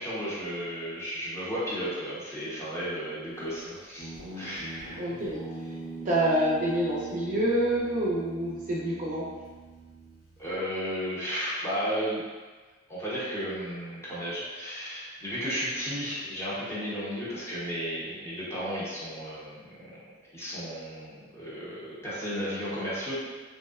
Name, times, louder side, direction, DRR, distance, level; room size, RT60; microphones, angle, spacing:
voice 1, 0.0-4.1 4.4-5.0 10.4-12.2 12.9-19.9 20.3-23.2, equal, 15° left, -9 dB, 0.6 m, -34 dB
Guitar, 4.0-10.5, right 4 dB, 50° left, 0.6 m, -42 dB
voice 2, 4.9-5.4 6.1-9.3, right 1 dB, 40° right, -6 dB, 0.4 m, -27 dB
2.6 x 2.0 x 2.3 m, 1.3 s
head